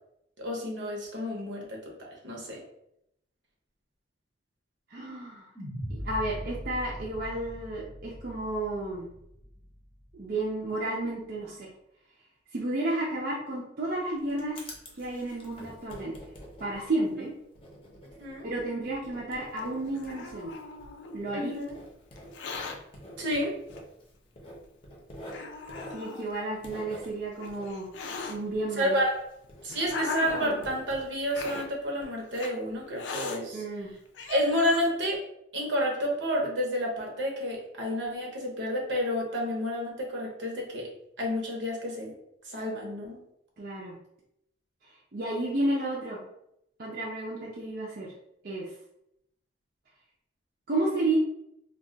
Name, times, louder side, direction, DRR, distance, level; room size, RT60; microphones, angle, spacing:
voice 1, 0.4-2.6 18.2-18.5 21.3-21.7 23.2-23.5 28.8-29.2 29.6-33.6 34.3-35.2 35.5-40.9 41.2-42.1 42.4-43.2, equal, 75° right, -1 dB, 0.8 m, -30 dB
voice 2, 4.9-5.5 5.9-9.1 10.1-11.7 12.5-14.6 15.0-16.1 16.6-17.3 18.4-20.5 21.1-21.5 25.9-27.9 28.3-29.0 33.5-33.9 43.6-44.0 45.1-46.2 46.8-48.1 48.4-48.7 50.7-51.2, right 2 dB, 50° right, -4 dB, 0.5 m, -32 dB
sound 1, 5.6-9.9, equal, 10° right, 0.6 m, -40 dB
Writing, 13.9-29.2 29.5-32.0, equal, 30° left, 0.6 m, -47 dB
Hiss, 19.6-21.2 22.2-22.8 23.7-23.8 24.6-24.7 25.3-26.3 27.1-28.3 29.2-30.7 31.3-31.7 32.3-32.5 33.0-33.4 33.9-34.0 34.1-34.9, left 4 dB, 75° left, 0.4 m, -38 dB
2.3 x 2.3 x 3.8 m, 0.78 s
head